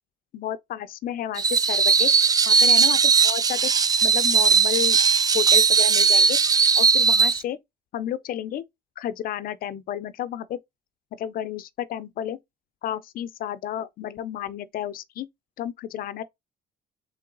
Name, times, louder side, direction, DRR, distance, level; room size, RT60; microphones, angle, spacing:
voice 1, 0.3-2.1 2.5-3.7 4.0-5.0 5.3-6.4 6.8-7.6 7.9-8.6 9.0-10.6 11.1-12.4 12.8-15.3 15.6-16.2, left 11 dB, 60° left, 0.5 m, -31 dB
Screech, 1.4-7.4, right 5 dB, 20° right, 0.3 m, -18 dB
3.9 x 3.1 x 3.7 m
cardioid pair, 110°, 17 cm